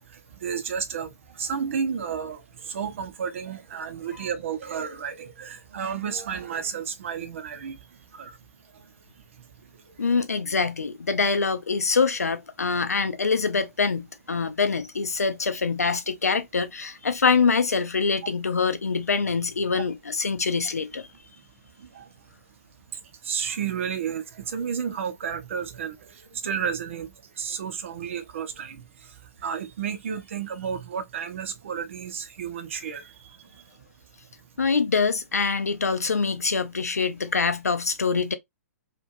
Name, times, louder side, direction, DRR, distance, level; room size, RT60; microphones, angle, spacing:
voice 1, 0.0-8.9 9.4-10.0 12.7-12.8 19.7-19.8 21.4-21.5 21.8-22.2 22.9-33.8, right 7 dB, 50° right, 0.7 m, -33 dB
voice 2, 10.0-21.1 34.6-38.3, left 5 dB, 75° left, 0.5 m, -24 dB
2.9 x 2.5 x 2.5 m
figure-of-eight pair, 115°, 8 cm